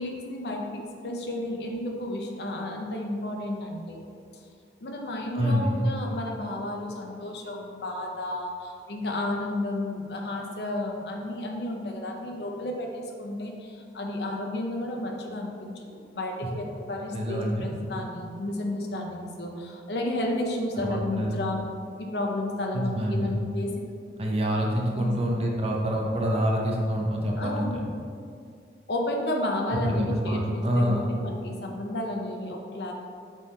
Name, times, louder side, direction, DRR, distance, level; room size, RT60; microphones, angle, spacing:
voice 1, 0.0-4.4 4.8-21.6 22.0-23.7 24.9-25.1 27.4-27.7 28.9-32.9, left 1 dB, 65° left, 1 dB, 0.8 m, -32 dB
voice 2, 5.3-5.8 17.1-17.7 20.8-21.4 22.7-23.3 24.2-27.7 29.8-31.1, equal, 35° right, -1 dB, 0.7 m, -26 dB
6.1 x 3.7 x 4.4 m, 2.3 s
head